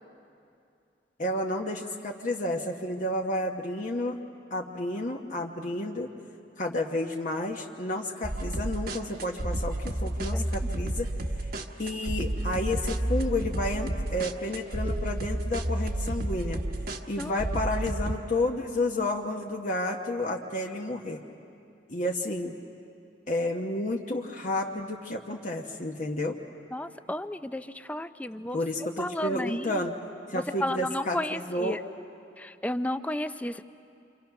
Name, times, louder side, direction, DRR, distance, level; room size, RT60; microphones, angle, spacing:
voice 1, 1.2-4.2 4.5-6.1 6.6-11.1 11.8-16.6 17.1-21.2 21.9-22.6 23.3-26.3 28.5-29.9 30.3-31.8, left 1 dB, 45° left, 1 dB, 1.1 m, -31 dB
sound 1, 8.2-18.2, right 1 dB, 55° right, 1.2 m, -31 dB
sound 2, 14.8-17.4, right 1 dB, 40° right, 0.6 m, -46 dB
voice 2, 26.7-29.9 30.3-31.8 32.4-33.6, left 1 dB, 10° left, 11 dB, 0.5 m, -33 dB
29.0 x 26.0 x 5.9 m, 2.5 s
head